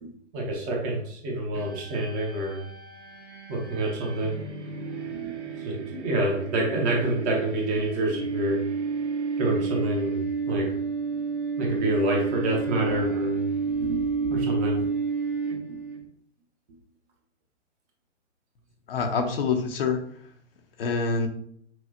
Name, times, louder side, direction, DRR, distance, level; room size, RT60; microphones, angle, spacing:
voice 1, 0.0-2.6 3.5-4.4 5.1-8.6 9.4-10.7 11.1-11.2 11.6-14.9 15.7-15.8, right 1 dB, 20° right, -1 dB, 0.9 m, -28 dB
sound 1, 1.5-16.0, right 5 dB, 65° right, 1.3 m, -31 dB
voice 2, 18.9-20.0 20.8-21.3, left 5 dB, 50° left, 4 dB, 0.8 m, -26 dB
5.9 x 2.4 x 2.8 m, 0.65 s
hypercardioid pair, 135°, 37 cm